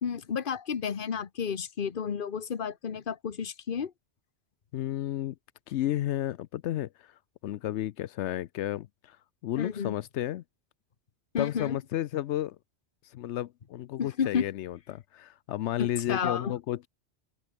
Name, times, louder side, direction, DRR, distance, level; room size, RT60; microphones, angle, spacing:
voice 1, 0.0-3.9 9.6-9.9 11.3-11.8 14.0-14.4 15.8-16.6, left 7 dB, 50° left, 1.2 m, -31 dB
voice 2, 4.7-5.4 5.7-9.2 9.4-10.4 11.4-12.6 13.0-16.9, left 13 dB, 85° left, 0.9 m, -32 dB
open air
omnidirectional pair, 1.2 m